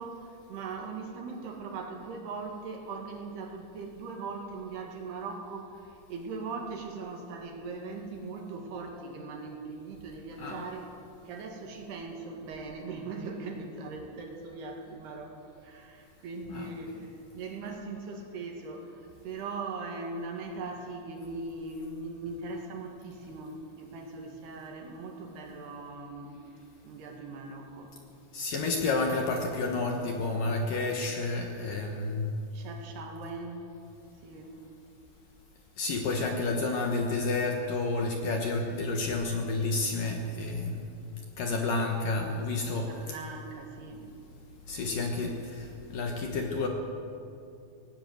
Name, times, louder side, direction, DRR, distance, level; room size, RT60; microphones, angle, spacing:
voice 1, 0.0-10.9 11.3-17.0 17.3-26.4 26.8-27.9 32.5-33.7 34.2-34.6 42.8-44.1, right 3 dB, 65° right, 2 dB, 3.9 m, -40 dB
voice 2, 28.3-32.2 35.8-40.9 41.4-42.9 44.7-46.7, left 3 dB, 60° left, 2 dB, 2.5 m, -30 dB
18.0 x 18.0 x 8.0 m, 2.6 s
omnidirectional pair, 5.3 m